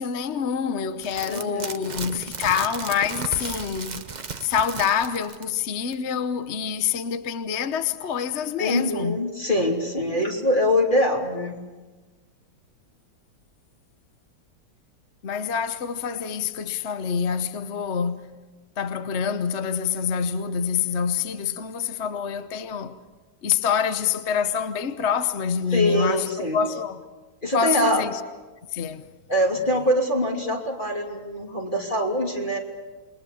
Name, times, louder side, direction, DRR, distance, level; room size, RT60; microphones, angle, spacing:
voice 1, 0.0-4.1 4.4-9.2 15.2-18.3 18.8-23.0 23.4-26.3 26.5-27.0 27.5-28.2 28.7-29.0, left 7 dB, 45° left, 1.0 m, -26 dB
sound 1, 1.0-5.6 5.9-6.0, right 5 dB, 45° right, 0.6 m, -35 dB
voice 2, 1.3-1.8 8.6-11.6 25.7-26.6 27.4-28.0 29.3-32.6, left 1 dB, 25° left, 3.2 m, -24 dB
28.5 x 22.0 x 7.1 m
omnidirectional pair, 2.2 m